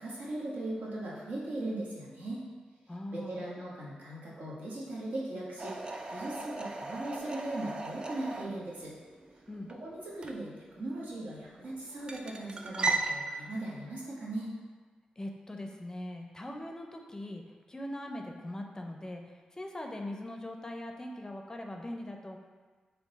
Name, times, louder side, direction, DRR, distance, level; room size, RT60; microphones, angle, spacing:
voice 1, 0.0-2.4 3.1-8.9 9.7-14.6, right 1 dB, 75° right, -5 dB, 1.1 m, -39 dB
voice 2, 2.9-3.4 9.5-9.7 15.2-17.4 17.7-22.4, left 1 dB, 25° left, 3 dB, 0.5 m, -41 dB
sound 1, 5.6-13.1, right 3 dB, 35° right, 0.4 m, -38 dB
3.7 x 2.9 x 4.0 m, 1.4 s
cardioid pair, 60°, 3 cm